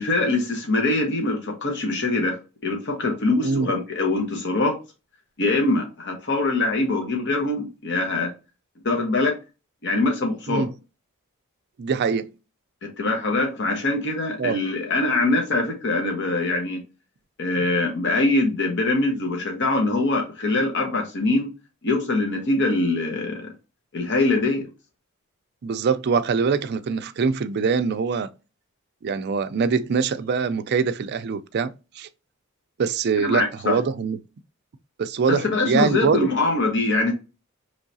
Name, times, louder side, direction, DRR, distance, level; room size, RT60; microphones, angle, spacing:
voice 1, 0.0-4.8 5.4-8.3 8.8-9.4 9.8-10.7 12.8-16.8 17.4-21.5 21.8-23.5 23.9-24.7 33.2-33.8 35.3-37.1, left 2 dB, 60° left, 0.9 m, -23 dB
voice 2, 11.8-12.3 14.4-14.6 25.6-28.3 29.0-32.1 32.8-34.2 35.0-36.3, right 5 dB, 50° right, 0.4 m, -23 dB
4.6 x 3.2 x 2.7 m
head